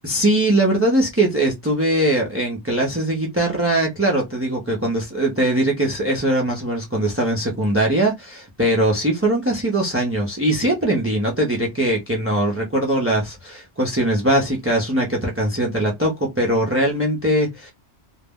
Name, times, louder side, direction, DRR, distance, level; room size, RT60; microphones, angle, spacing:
voice 1, 0.0-17.7, right 1 dB, 20° right, 0.4 m, -21 dB
2.3 x 2.0 x 3.4 m
omnidirectional pair, 1.1 m